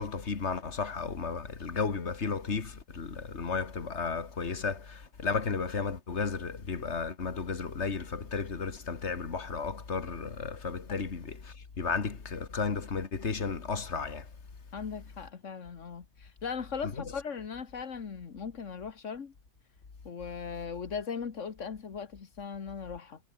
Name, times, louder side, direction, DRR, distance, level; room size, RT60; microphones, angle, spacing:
voice 1, 0.0-14.3 16.8-17.1, left 5 dB, 65° left, 2.2 m, -34 dB
voice 2, 14.7-19.3 20.1-23.2, left 6 dB, 85° left, 1.9 m, -38 dB
omnidirectional pair, 1.3 m